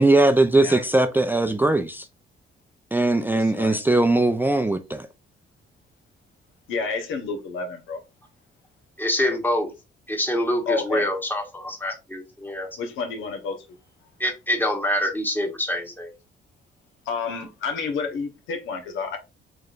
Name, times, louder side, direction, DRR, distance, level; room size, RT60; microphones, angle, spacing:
voice 1, 0.0-2.1 2.9-5.1, right 2 dB, 10° right, 0.4 m, -20 dB
voice 2, 3.3-3.9 6.7-8.0 10.7-11.1 12.8-13.6 17.1-19.2, left 4 dB, 90° left, 1.0 m, -29 dB
voice 3, 9.0-9.7 10.1-12.7 14.2-16.1, left 1 dB, 10° left, 1.2 m, -25 dB
4.7 x 3.2 x 2.5 m
cardioid pair, 90°, 20 cm